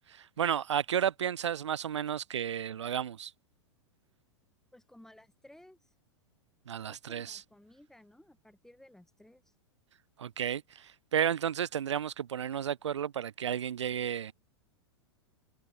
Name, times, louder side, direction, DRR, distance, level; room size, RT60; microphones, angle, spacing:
voice 1, 0.1-3.3 6.7-7.4 10.2-14.3, right 9 dB, 75° right, 0.4 m, -32 dB
voice 2, 4.7-5.9 6.8-9.5, left 1 dB, 5° left, 6.5 m, -57 dB
figure-of-eight pair, 95°, 15 cm